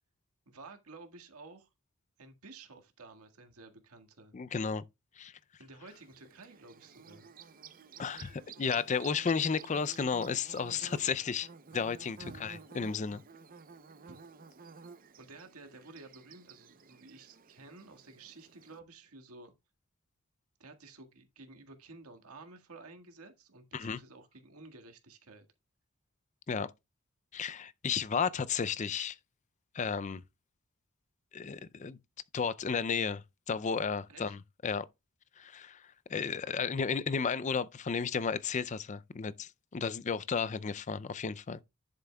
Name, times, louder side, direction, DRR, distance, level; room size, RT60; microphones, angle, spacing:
voice 1, 0.5-1.7 2.2-4.4 5.6-7.3 12.2-12.4 14.1-14.2 15.2-19.5 20.6-25.5 34.1-34.4, right 3 dB, 85° right, 1.8 m, -52 dB
voice 2, 4.3-4.8 5.2-5.3 8.0-11.5 11.7-13.2 23.7-24.0 26.5-26.7 27.3-29.2 29.7-30.2 31.3-32.0 32.3-34.9 35.4-35.8 36.1-41.6, left 6 dB, 35° left, 0.4 m, -33 dB
Bird / Buzz, 5.9-18.8, right 5 dB, 40° right, 0.6 m, -53 dB
10.5 x 7.5 x 2.3 m
head